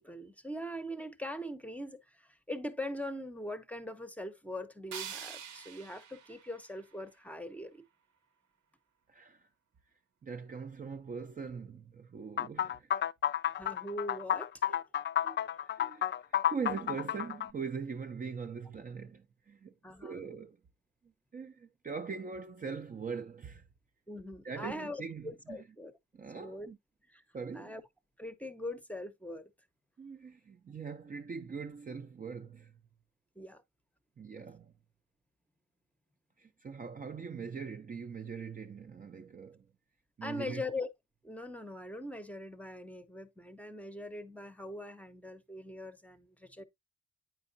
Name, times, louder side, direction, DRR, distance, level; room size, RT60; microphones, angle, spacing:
voice 1, 0.0-7.8 13.6-14.5 19.8-20.2 24.1-25.9 26.3-26.7 27.1-27.2 27.5-27.8 28.2-29.5 33.4-33.6 40.2-40.9 41.2-46.6, left 1 dB, 5° left, 0.8 m, -42 dB
sound 1, 4.9-7.9, right 8 dB, 80° right, 1.0 m, -47 dB
voice 2, 9.1-9.5 10.2-12.9 14.7-14.8 15.2-19.7 20.0-20.6 21.3-23.7 24.4-25.6 26.1-26.8 27.3-27.8 30.0-32.8 34.2-34.7 36.4-39.7 40.2-40.6, right 5 dB, 30° right, 0.5 m, -42 dB
sound 2, 12.4-17.5, left 10 dB, 40° left, 0.4 m, -31 dB
8.8 x 4.7 x 2.6 m
cardioid pair, 90°, 30 cm